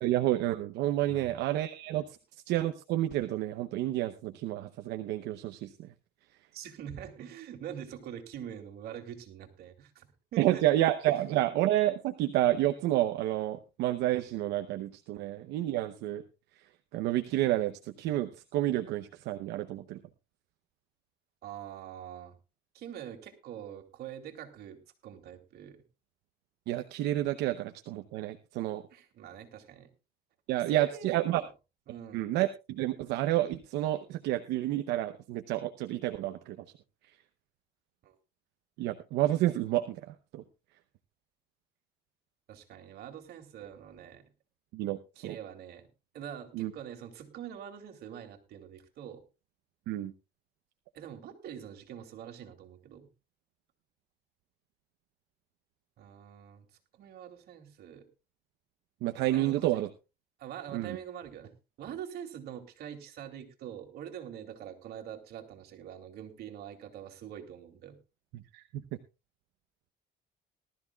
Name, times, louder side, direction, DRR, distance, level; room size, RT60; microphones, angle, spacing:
voice 1, 0.0-2.2 2.5-5.9 10.4-16.2 16.9-20.0 26.7-28.8 30.5-31.4 32.1-36.6 38.8-40.4 44.7-45.3 46.5-46.7 49.9-50.1 59.0-59.9 60.7-61.0 68.3-68.6, right 14 dB, 90° right, 8 dB, 0.8 m, -30 dB
voice 2, 6.5-10.6 21.4-22.3 22.7-25.8 28.9-29.9 30.7-31.5 31.9-32.3 38.0-38.1 42.5-44.2 45.2-45.9 46.1-49.2 50.9-53.1 56.0-56.6 56.9-58.1 59.3-59.9 60.4-68.0, right 9 dB, 70° right, 4 dB, 2.8 m, -44 dB
19.5 x 13.0 x 2.3 m, 0.28 s
cardioid pair, 110°, 17 cm